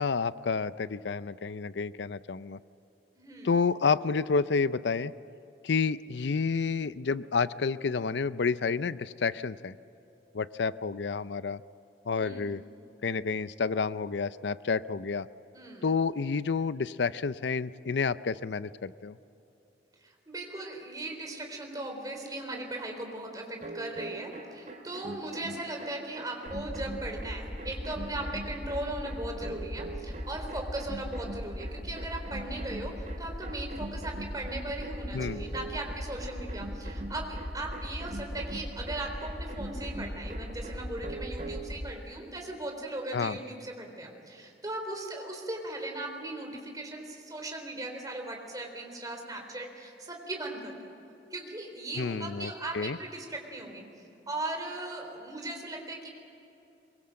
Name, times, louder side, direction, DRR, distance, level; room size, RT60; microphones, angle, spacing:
voice 1, 0.0-2.6 3.4-5.1 5.6-9.8 10.3-11.6 12.1-12.6 13.0-15.3 15.8-19.2 35.1-35.4 43.1-43.4 52.0-53.0, left 5 dB, 85° left, 15 dB, 0.5 m, -29 dB
voice 2, 3.2-3.5 12.2-12.5 15.5-15.9 20.0-50.7 51.3-53.9 54.3-56.1, right 2 dB, 20° right, 2 dB, 3.8 m, -38 dB
sound 1, 23.6-41.8, right 2 dB, 45° right, 2.4 m, -43 dB
sound 2, 26.5-41.9, equal, 20° left, 1.0 m, -39 dB
23.5 x 23.0 x 7.7 m, 2.9 s
head